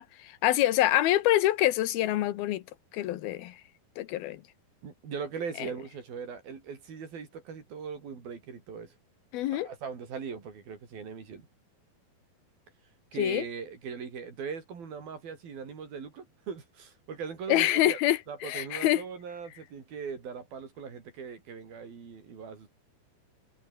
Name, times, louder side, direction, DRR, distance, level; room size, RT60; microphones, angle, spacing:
voice 1, 0.0-2.6 2.9-3.6 4.0-4.4 5.6-5.7 9.3-9.7 13.2-13.5 17.5-18.2 18.4-19.0, left 14 dB, 85° left, 3.1 m, -26 dB
voice 2, 4.8-9.0 9.5-11.5 13.1-18.0 18.3-22.7, right 6 dB, 75° right, 6.3 m, -40 dB
omnidirectional pair, 4.3 m